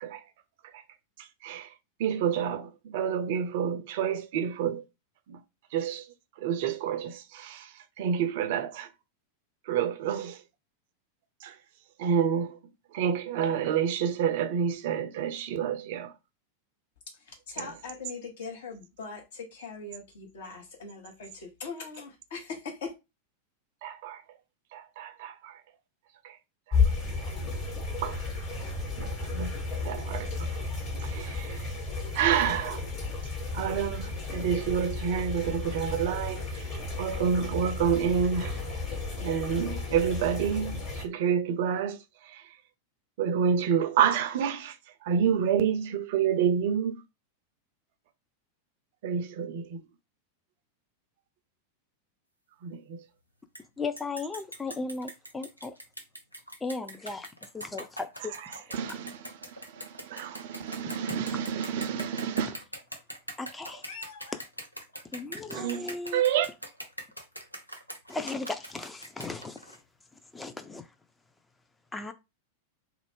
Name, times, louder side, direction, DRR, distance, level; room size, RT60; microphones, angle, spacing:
voice 1, 1.2-1.7 2.0-4.8 5.3-5.4 5.7-6.1 6.4-7.7 8.0-8.9 9.7-10.4 11.4-11.5 12.0-12.6 12.9-16.1 17.6-17.7 23.8-24.2 24.7-25.6 26.2-26.4 26.7-26.8 28.0-28.2 29.0-29.5 29.8-30.5 31.0-31.7 32.1-32.8 33.5-36.7 37.0-38.6 39.2-42.0 42.2-42.4 43.2-44.7 45.0-47.0 49.0-49.8 52.6-53.0 58.7-59.2 59.7-62.6 65.5-65.9 66.1-66.5, right 8 dB, 50° right, 0.4 m, -28 dB
voice 2, 17.3-22.9 63.9-64.4, left 4 dB, 60° left, 0.9 m, -41 dB
sound 1, 26.7-41.0, left 4 dB, 30° left, 1.2 m, -33 dB
sound 2, 53.6-53.7 54.0-69.8, equal, 90° left, 0.5 m, -42 dB
voice 3, 53.8-55.7 56.6-57.3 57.5-58.3 60.9-61.0 63.4-63.8 65.1-66.2 68.1-69.8 70.3-70.8 71.9-72.1, left 3 dB, 10° left, 0.4 m, -36 dB
2.4 x 2.1 x 3.3 m
figure-of-eight pair, 90°, 0 cm